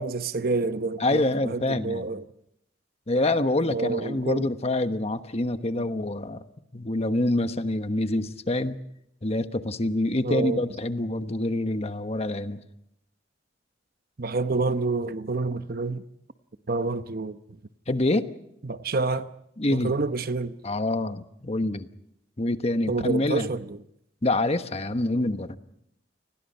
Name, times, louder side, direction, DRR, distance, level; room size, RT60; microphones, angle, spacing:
voice 1, 0.0-2.2 3.7-4.5 10.2-10.6 14.2-16.0 16.7-17.4 18.6-19.3 19.7-20.6 22.9-23.8, right 3 dB, 55° right, 0.9 m, -28 dB
voice 2, 1.0-2.1 3.1-6.4 6.7-8.8 9.2-12.6 17.9-18.3 19.6-19.9 20.6-21.9 22.4-23.5 24.2-25.6, left 2 dB, 35° left, 1.2 m, -26 dB
29.5 x 21.0 x 5.6 m
head